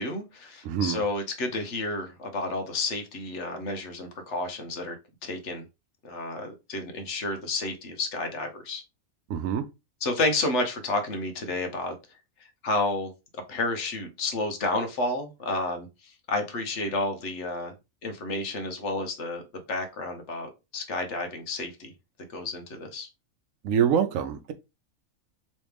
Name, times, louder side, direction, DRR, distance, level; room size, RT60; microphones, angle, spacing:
voice 1, 0.0-5.0 5.2-5.6 6.0-8.8 10.0-11.9 12.6-13.1 13.5-17.7 18.0-19.4 19.7-21.9 22.3-23.1, left 2 dB, 60° left, 1.1 m, -30 dB
voice 2, 0.6-1.0 9.3-9.6 23.6-24.5, right 8 dB, 75° right, 1.0 m, -25 dB
3.2 x 3.1 x 3.3 m
omnidirectional pair, 1.4 m